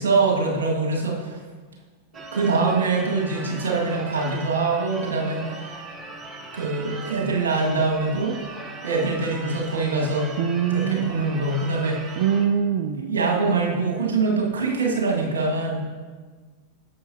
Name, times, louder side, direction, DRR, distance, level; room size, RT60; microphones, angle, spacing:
voice 1, 0.0-1.4 2.3-5.8 6.5-8.4 8.8-10.3 10.7-12.2 13.0-15.8, right 3 dB, 65° right, -2 dB, 1.9 m, -24 dB
Church bell / Car / Alarm, 2.1-12.5, right 3 dB, 25° right, 0.9 m, -39 dB
voice 2, 10.4-11.2 12.2-13.1, right 8 dB, 45° right, 6 dB, 0.4 m, -23 dB
10.5 x 7.5 x 2.8 m, 1.5 s
figure-of-eight pair, 90°, 0 cm